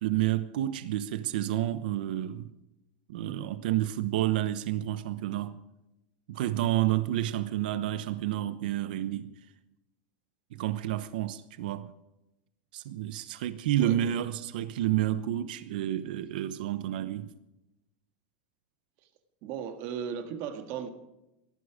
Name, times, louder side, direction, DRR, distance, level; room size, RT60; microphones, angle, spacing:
voice 1, 0.0-2.5 3.1-5.6 6.3-9.4 10.5-11.9 12.7-17.3, right 13 dB, 75° right, 0.9 m, -30 dB
voice 2, 13.8-14.1 19.4-20.9, right 8 dB, 45° right, 1.9 m, -36 dB
18.0 x 14.5 x 5.0 m
supercardioid pair, 160°, 5 cm